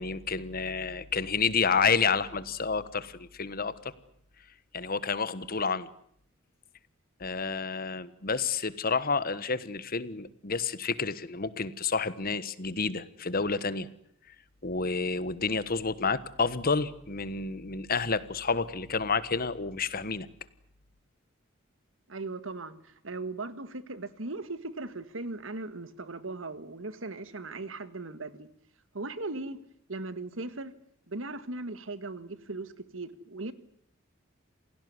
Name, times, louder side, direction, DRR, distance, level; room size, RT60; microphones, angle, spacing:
voice 1, 0.0-3.9 4.7-5.9 7.2-13.9 14.3-14.4 14.6-20.3, left 5 dB, 45° left, 15 dB, 1.3 m, -30 dB
voice 2, 22.1-22.8 23.0-28.5 28.9-29.6 29.9-30.7 31.1-33.5, right 2 dB, 75° right, 14 dB, 1.7 m, -38 dB
28.0 x 17.5 x 9.7 m, 0.70 s
head